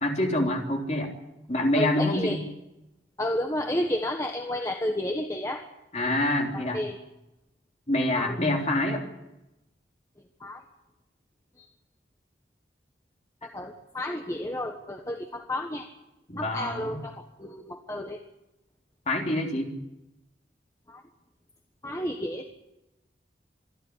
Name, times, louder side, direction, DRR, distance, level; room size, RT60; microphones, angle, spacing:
voice 1, 0.0-1.1 1.5-2.4 5.9-6.8 7.9-9.0 16.3-17.0 19.1-19.8, left 1 dB, 35° left, 1 dB, 3.5 m, -26 dB
voice 2, 1.7-2.4 3.2-5.6 6.5-7.0 8.1-8.4 10.4-10.6 13.4-15.9 16.4-18.2 20.9-21.0 21.8-22.5, left 1 dB, 15° left, 3 dB, 1.3 m, -31 dB
26.0 x 11.5 x 9.7 m, 0.94 s
head